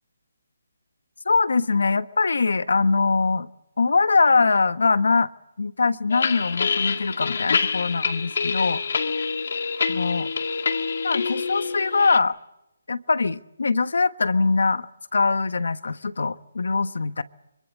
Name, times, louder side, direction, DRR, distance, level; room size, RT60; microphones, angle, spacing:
voice 1, 1.2-3.5 3.8-5.3 5.6-8.8 9.9-10.3 11.0-12.4 12.9-14.9 15.1-17.2, left 4 dB, 80° left, 13 dB, 1.3 m, -22 dB
sound 1, 6.1-12.2, left 5 dB, 60° left, 1.9 m, -26 dB
25.5 x 24.0 x 7.6 m, 0.91 s
hypercardioid pair, 170°, 0 cm